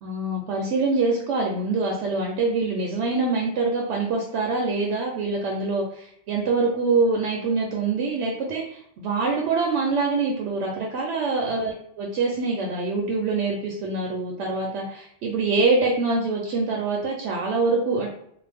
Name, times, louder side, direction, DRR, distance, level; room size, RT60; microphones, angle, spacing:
voice 1, 0.0-18.1, right 3 dB, 75° right, -1 dB, 0.9 m, -25 dB
2.5 x 2.2 x 3.3 m, 0.70 s
omnidirectional pair, 1.2 m